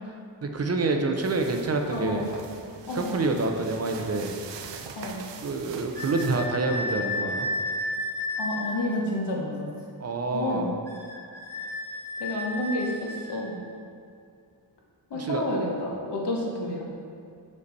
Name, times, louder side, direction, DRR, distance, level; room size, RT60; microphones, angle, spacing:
voice 1, 0.4-2.3 2.9-4.4 5.4-7.5 10.0-10.7 15.1-15.4, right 3 dB, 35° right, 4 dB, 0.6 m, -27 dB
sound 1, 1.2-6.5, right 6 dB, 85° right, 0.6 m, -43 dB
voice 2, 1.9-2.3 2.9-3.2 5.0-5.2 8.4-9.7 10.3-10.7 12.2-13.6 15.1-16.8, left 1 dB, 75° left, -2 dB, 1.3 m, -30 dB
sound 2, 5.9-8.7 10.9-13.4, left 1 dB, 5° left, 0.9 m, -32 dB
6.6 x 5.2 x 4.1 m, 2.4 s
wide cardioid pair, 140°, 42 cm